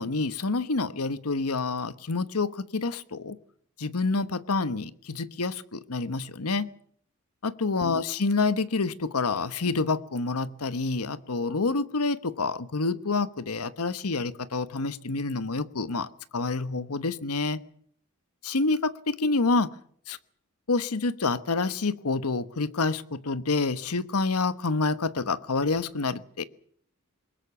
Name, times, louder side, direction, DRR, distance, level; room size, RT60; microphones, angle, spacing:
voice 1, 0.0-3.4 3.8-6.7 7.4-17.6 18.4-19.7 20.1-20.2 20.7-26.4, left 3 dB, 80° left, 13 dB, 1.1 m, -28 dB
22.5 x 20.5 x 7.1 m, 0.62 s
head